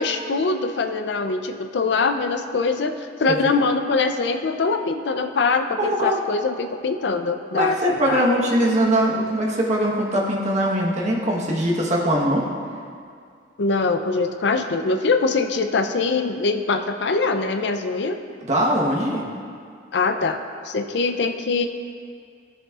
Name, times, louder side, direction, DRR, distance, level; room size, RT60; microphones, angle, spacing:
voice 1, 0.0-7.8 8.0-8.2 13.6-18.2 19.9-20.4 20.6-21.7, left 4 dB, 65° left, 7 dB, 0.5 m, -23 dB
voice 2, 5.8-6.2 7.5-12.5 18.4-19.2, equal, 40° right, -3 dB, 1.2 m, -21 dB
14.0 x 7.0 x 2.4 m, 2.2 s
head